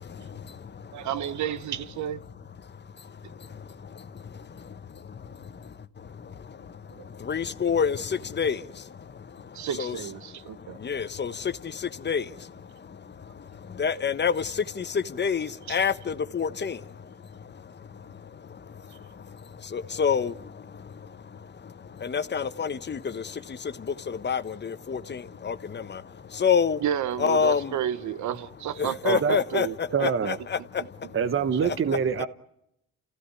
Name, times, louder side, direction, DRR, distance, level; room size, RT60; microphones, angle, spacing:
voice 1, 0.0-1.1 2.6-26.8 27.2-27.8 28.7-31.2 31.6-32.2, left 6 dB, 35° left, 1.2 m, -30 dB
voice 2, 0.9-2.2 6.9-7.1 9.5-10.8 15.7-15.8 26.8-29.7, right 10 dB, 70° right, 1.1 m, -31 dB
voice 3, 29.0-29.4 29.9-30.4 31.1-32.3, right 6 dB, 45° right, 1.3 m, -25 dB
30.0 x 16.0 x 9.8 m
cardioid pair, 90°, 30 cm